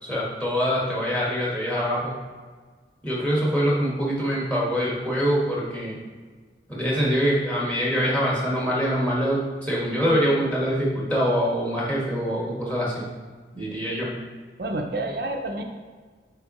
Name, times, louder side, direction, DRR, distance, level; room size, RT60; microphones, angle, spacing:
voice 1, 0.0-2.1 3.0-6.0 6.7-13.0 13.5-14.1, equal, 10° left, -5 dB, 1.4 m, -24 dB
voice 2, 14.6-15.6, right 2 dB, 55° right, 3 dB, 0.5 m, -29 dB
6.9 x 4.5 x 3.0 m, 1.5 s
head